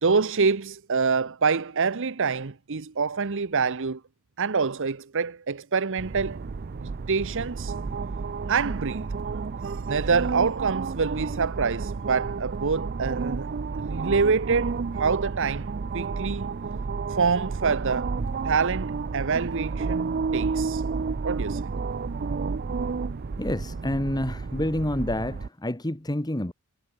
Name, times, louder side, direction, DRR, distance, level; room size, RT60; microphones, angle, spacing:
voice 1, 0.0-4.0 4.4-6.4 7.1-7.7 8.5-9.1 9.6-13.5 13.9-16.5 17.1-18.1 18.4-20.8 21.2-21.7, right 5 dB, 60° right, 0.9 m, -26 dB
sound 1, 6.0-25.5, right 4 dB, 45° right, 0.5 m, -31 dB
voice 2, 23.4-26.5, left 1 dB, 20° left, 1.5 m, -28 dB
head